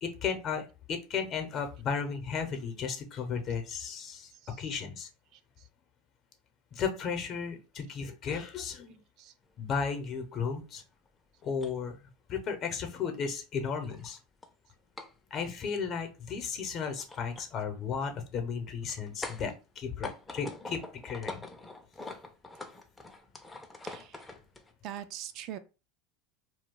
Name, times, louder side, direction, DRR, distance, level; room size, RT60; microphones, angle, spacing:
voice 1, 0.0-4.3 4.6-5.1 6.7-9.0 9.6-10.8 11.4-12.0 12.3-14.2 15.3-21.4, left 6 dB, 45° left, 0.8 m, -34 dB
sound 1, 9.6-9.9 10.1-10.2 10.8-11.1 11.4-11.7 12.9-13.0 13.7-14.5 15.0-15.1 16.8-17.5 18.8-19.5 19.9-24.7, left 2 dB, 15° left, 0.5 m, -44 dB
voice 2, 23.8-24.2 24.8-25.6, right 11 dB, 55° right, 0.4 m, -42 dB
2.3 x 2.2 x 3.7 m
hypercardioid pair, 100°, 0 cm